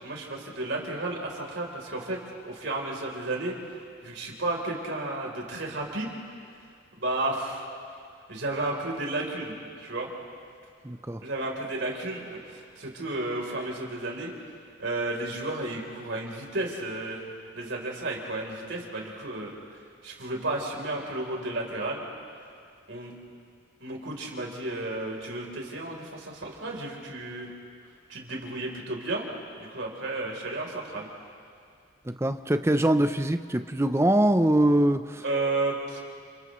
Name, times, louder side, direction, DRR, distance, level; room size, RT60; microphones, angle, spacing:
voice 1, 0.0-3.5 4.0-6.2 7.0-7.7 8.3-9.5 9.8-10.1 11.2-14.3 14.8-17.2 17.5-19.5 20.0-22.0 22.9-23.1 23.8-27.5 28.1-29.3 29.6-31.1 35.2-36.0, right 2 dB, 65° right, -1 dB, 3.7 m, -32 dB
voice 2, 10.8-11.2 32.1-35.2, right 1 dB, 15° right, 9 dB, 0.6 m, -23 dB
30.0 x 29.0 x 3.2 m, 2.3 s
head